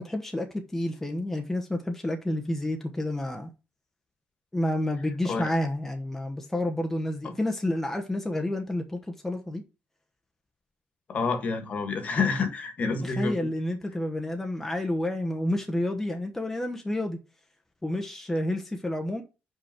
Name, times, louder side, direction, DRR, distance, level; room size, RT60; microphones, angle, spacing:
voice 1, 0.0-3.5 4.5-9.6 13.0-17.2 17.8-19.2, left 1 dB, 5° left, 1.0 m, -29 dB
voice 2, 11.1-13.5, left 4 dB, 45° left, 1.6 m, -28 dB
5.3 x 5.0 x 5.8 m
cardioid pair, 120°, 4 cm